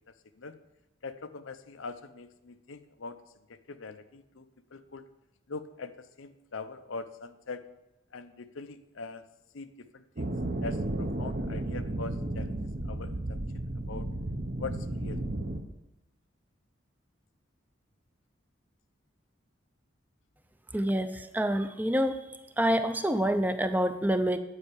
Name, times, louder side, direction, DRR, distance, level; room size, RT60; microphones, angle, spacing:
voice 1, 1.0-3.2 3.5-5.1 5.5-7.6 8.1-9.2 9.5-10.3 10.6-14.1 14.6-15.2, left 4 dB, 90° left, 10 dB, 0.7 m, -42 dB
sound 1, 10.2-15.6, right 1 dB, 45° right, 0.8 m, -33 dB
voice 2, 20.7-22.2 22.6-24.4, equal, 10° right, 9 dB, 0.4 m, -27 dB
9.9 x 5.6 x 8.4 m, 0.95 s
head